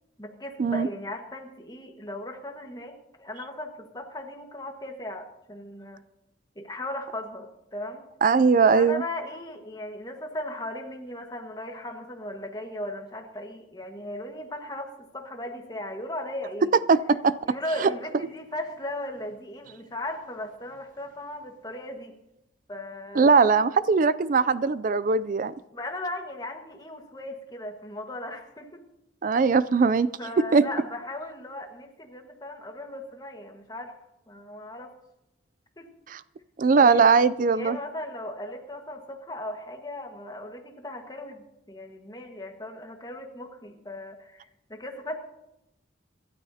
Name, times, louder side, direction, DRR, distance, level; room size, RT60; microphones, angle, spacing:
voice 1, 0.2-6.0 6.5-8.0 8.7-16.7 17.4-22.1 22.7-23.3 25.7-28.8 30.2-33.9 34.3-34.9 35.8-35.9 36.8-45.2, left 1 dB, 20° left, 1.6 m, -37 dB
voice 2, 8.2-9.0 16.9-17.6 17.8-17.9 23.2-25.5 29.2-30.1 30.5-30.6 36.1-36.2 36.6-37.8, right 5 dB, 45° right, 0.4 m, -20 dB
25.5 x 12.5 x 2.8 m
head